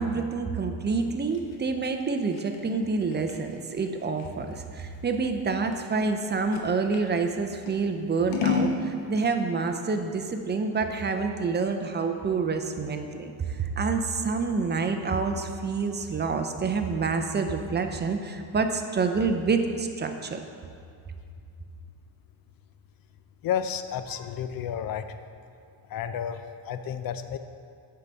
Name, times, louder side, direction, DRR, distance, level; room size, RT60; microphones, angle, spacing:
voice 1, 0.0-20.4, right 4 dB, 20° right, 6 dB, 0.5 m, -27 dB
Scissors, 0.9-7.1 7.6-8.8, left 6 dB, 85° left, 0.9 m, -33 dB
voice 2, 23.4-25.1 25.9-27.4, left 8 dB, 50° left, 10 dB, 0.5 m, -31 dB
8.1 x 5.7 x 4.0 m, 2.3 s
cardioid pair, 90°, 49 cm